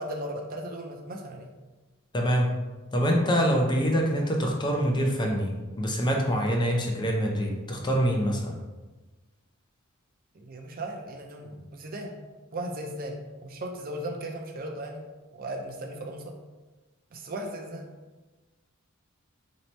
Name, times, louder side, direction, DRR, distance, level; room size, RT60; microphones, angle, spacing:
voice 1, 0.0-1.5 10.3-12.1 12.5-16.4 17.1-17.9, right 1 dB, 45° right, 2 dB, 0.5 m, -37 dB
voice 2, 2.1-2.5 2.9-8.6, equal, 20° left, 1 dB, 0.5 m, -25 dB
3.1 x 2.8 x 4.4 m, 1.2 s
head